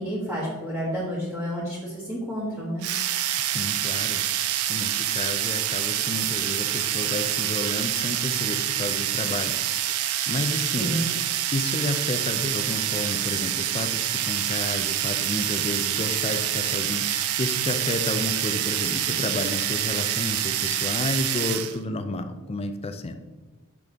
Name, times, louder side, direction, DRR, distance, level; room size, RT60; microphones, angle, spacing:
voice 1, 0.0-2.8 10.8-11.0, equal, 5° right, -8 dB, 1.1 m, -30 dB
sound 1, 2.8-21.8, right 11 dB, 85° right, 0.5 m, -27 dB
voice 2, 3.4-4.2 4.7-9.5 9.9-10.9 11.5-23.1, left 2 dB, 25° left, 8 dB, 0.4 m, -31 dB
6.1 x 5.1 x 3.6 m, 1.2 s
head